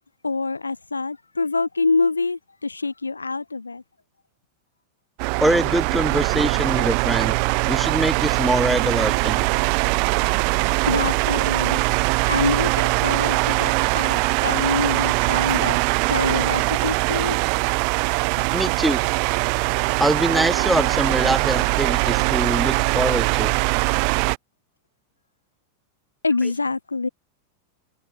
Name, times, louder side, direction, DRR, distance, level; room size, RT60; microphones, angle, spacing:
voice 1, 0.2-3.8 10.9-11.8 12.3-15.8 16.0-17.4 18.4-18.6 26.2-27.1, left 3 dB, 80° left, 1.9 m, -26 dB
sound 1, 5.2-24.4, right 40 dB or more, 45° right, 1.4 m, -21 dB
voice 2, 5.4-7.3 7.7-9.5 18.5-19.0 20.0-23.5, right 1 dB, 5° right, 0.7 m, -23 dB
figure-of-eight pair, 90°, 0 cm